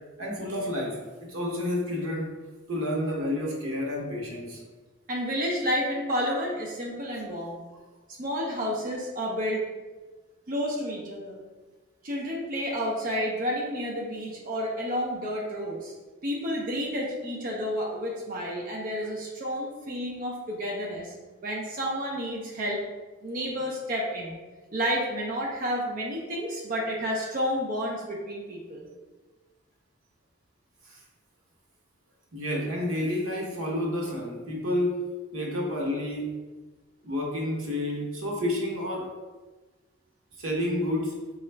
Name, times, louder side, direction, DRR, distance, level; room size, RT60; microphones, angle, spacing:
voice 1, 0.2-1.0 1.3-2.4 2.7-4.6 30.8-31.0 32.3-35.0 35.3-36.3 37.0-39.1 40.4-41.2, left 1 dB, 90° right, -2 dB, 0.9 m, -30 dB
voice 2, 5.1-7.6 8.2-9.6 10.5-11.4 12.0-15.9 16.2-21.1 21.4-22.8 23.2-24.4 24.7-28.9, equal, 40° right, -2 dB, 0.5 m, -30 dB
4.0 x 2.3 x 3.2 m, 1.3 s
head